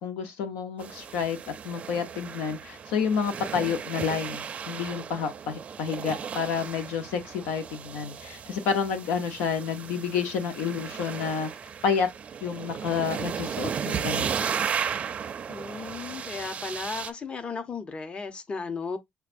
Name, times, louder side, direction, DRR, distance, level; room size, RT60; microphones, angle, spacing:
voice 1, 0.0-11.5 11.8-12.1 12.4-14.3, left 6 dB, 90° left, 0.8 m, -29 dB
sound 1, 0.8-17.1, right 7 dB, 40° right, 0.5 m, -35 dB
voice 2, 15.5-19.0, left 4 dB, 35° left, 0.8 m, -35 dB
6.7 x 2.3 x 2.5 m
cardioid pair, 100°, 3 cm